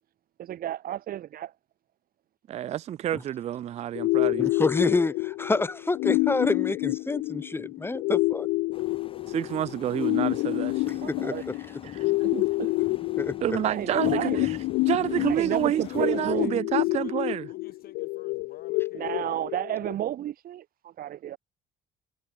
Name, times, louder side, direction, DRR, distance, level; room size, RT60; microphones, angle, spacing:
voice 1, 0.4-1.5 11.0-11.4 12.2-12.8 13.7-14.5 15.2-16.6 18.9-21.4, right 12 dB, 60° right, 1.6 m, -32 dB
voice 2, 2.5-4.5 9.3-11.0 11.8-12.1 13.4-14.6 14.9-17.5, right 11 dB, 40° right, 0.4 m, -29 dB
sound 1, 4.0-19.9, left 23 dB, 90° left, 0.4 m, -28 dB
voice 3, 4.4-8.5 11.0-11.5 13.2-13.3, left 2 dB, 15° left, 1.3 m, -28 dB
sound 2, 8.7-16.5, left 6 dB, 30° left, 1.8 m, -45 dB
voice 4, 15.8-17.2 17.5-19.3, left 11 dB, 60° left, 7.2 m, -50 dB
cardioid pair, 110°, 17 cm